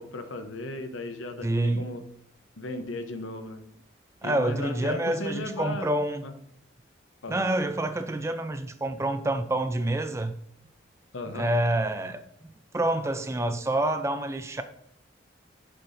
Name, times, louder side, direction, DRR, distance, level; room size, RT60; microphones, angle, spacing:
voice 1, 0.0-2.0 2.6-3.6 4.2-5.9 6.2-6.3 7.2-7.4 11.1-11.5, left 2 dB, 85° left, 0.8 m, -36 dB
voice 2, 1.4-1.9 4.2-6.2 7.3-10.3 11.3-12.2 12.7-14.6, right 1 dB, 15° right, 0.3 m, -27 dB
6.6 x 5.7 x 2.6 m
head